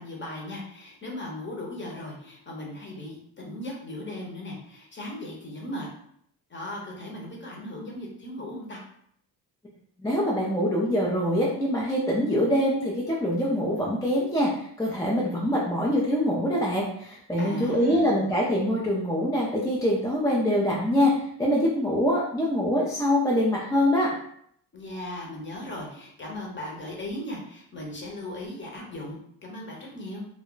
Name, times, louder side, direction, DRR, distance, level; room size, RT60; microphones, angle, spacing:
voice 1, 0.0-5.9 6.5-8.8 17.4-18.3 24.7-30.2, left 1 dB, 25° left, -1 dB, 0.8 m, -37 dB
voice 2, 10.0-24.1, equal, 10° left, -4 dB, 0.3 m, -24 dB
2.3 x 2.1 x 3.7 m, 0.69 s
cardioid pair, 110°, 42 cm